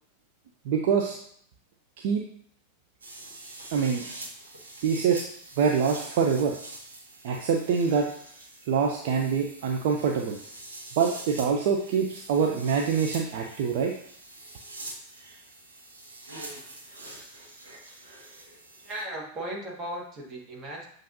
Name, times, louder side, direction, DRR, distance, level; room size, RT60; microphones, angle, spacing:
voice 1, 0.7-1.2 2.0-2.2 3.7-4.0 4.8-5.2 5.6-6.6 7.2-8.1 8.7-10.4 11.0-13.9, right 6 dB, 50° right, 2 dB, 0.4 m, -25 dB
sound 1, 3.0-19.0, right 2 dB, 70° right, 0.9 m, -45 dB
voice 2, 18.8-20.9, right 1 dB, 30° right, -1 dB, 1.3 m, -37 dB
7.3 x 2.6 x 2.6 m, 0.63 s
figure-of-eight pair, 90°, 0 cm